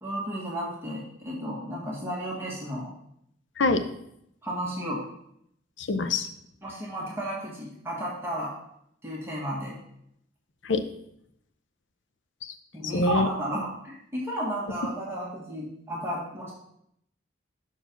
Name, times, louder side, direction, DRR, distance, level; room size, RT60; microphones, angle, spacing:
voice 1, 0.0-2.9 4.4-5.0 6.6-8.5 9.0-9.7 12.7-16.5, right 1 dB, 15° right, -5 dB, 1.4 m, -33 dB
voice 2, 5.8-6.3 10.6-10.8 12.4-12.5 12.9-13.3, left 3 dB, 70° left, 8 dB, 0.6 m, -24 dB
5.7 x 4.5 x 5.7 m, 0.74 s
head